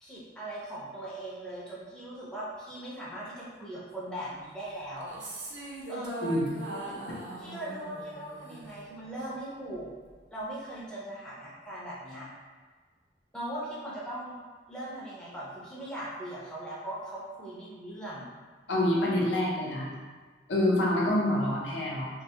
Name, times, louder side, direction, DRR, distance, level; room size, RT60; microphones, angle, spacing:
voice 1, 0.0-5.1 5.9-6.3 6.9-7.0 7.4-9.9 10.3-12.3 13.3-14.3 14.7-18.3, right 1 dB, 5° left, -8 dB, 0.4 m, -39 dB
sound 1, 4.9-9.4, right 1 dB, 75° right, 0.5 m, -41 dB
voice 2, 18.7-19.9 20.5-22.1, left 1 dB, 80° left, -4 dB, 0.6 m, -26 dB
2.2 x 2.0 x 2.7 m, 1.5 s
head